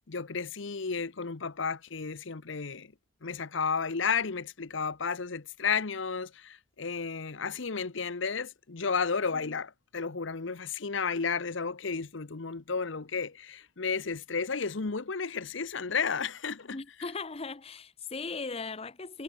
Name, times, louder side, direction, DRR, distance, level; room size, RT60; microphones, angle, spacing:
voice 1, 0.1-2.9 3.2-16.8, left 5 dB, 65° left, 0.9 m, -32 dB
voice 2, 16.7-19.2, left 4 dB, 30° left, 0.8 m, -38 dB
head